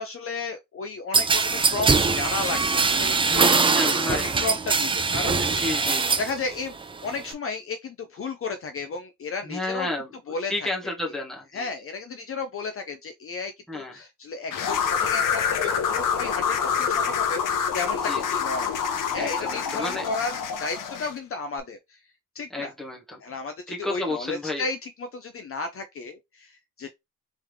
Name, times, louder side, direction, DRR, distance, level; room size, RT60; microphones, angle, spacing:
voice 1, 0.0-3.4 4.0-5.6 6.2-6.8 7.0-9.9 10.3-10.7 11.5-18.8 19.1-20.3 20.6-22.0 22.3-22.7 23.2-26.9, left 3 dB, 45° left, 0.5 m, -33 dB
sound 1, 1.1-6.3 6.7-7.3, right 4 dB, 15° right, 0.3 m, -22 dB
voice 2, 3.2-4.3 5.4-6.3 9.4-10.1 10.5-11.7 13.7-13.9 18.0-18.4 19.2-20.0 22.5-23.2 23.7-24.6, left 2 dB, ahead, 1.2 m, -32 dB
sound 2, 14.5-21.2, left 7 dB, 75° left, 0.8 m, -26 dB
3.5 x 3.3 x 3.1 m
wide cardioid pair, 145°, 32 cm